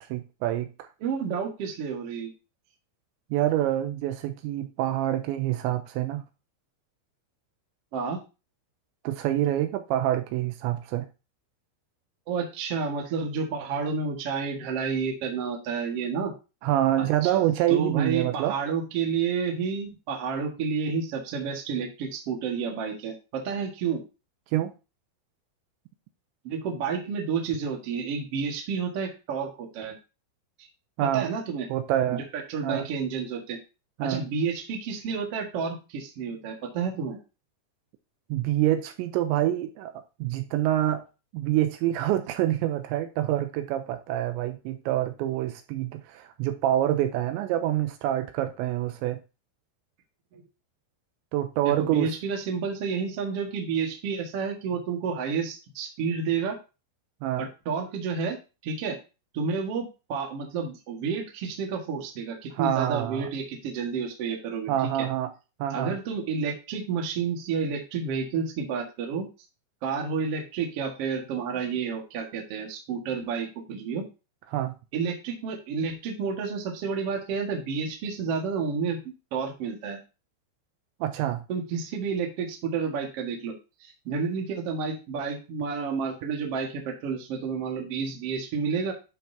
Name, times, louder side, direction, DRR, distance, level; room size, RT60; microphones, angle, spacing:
voice 1, 0.0-0.9 3.3-6.2 9.0-11.1 16.6-18.6 24.5-24.7 31.0-31.3 31.7-32.2 32.6-32.9 34.0-34.3 38.3-39.9 40.2-41.0 41.3-49.2 51.3-52.1 57.2-57.5 62.5-63.3 64.7-65.3 65.6-66.0 74.5-74.7 81.0-81.4, right 13 dB, 85° right, 2.8 m, -26 dB
voice 2, 1.0-2.3 7.9-8.2 12.3-16.3 17.0-24.0 26.4-29.9 31.1-31.7 32.1-33.6 34.0-37.2 50.3-50.4 51.6-56.6 57.4-58.4 58.6-59.0 59.3-64.9 65.7-69.3 69.8-74.1 74.9-79.0 79.3-80.0 81.5-83.5 83.8-88.9, right 5 dB, 65° right, 1.4 m, -30 dB
11.5 x 5.5 x 2.7 m
omnidirectional pair, 5.5 m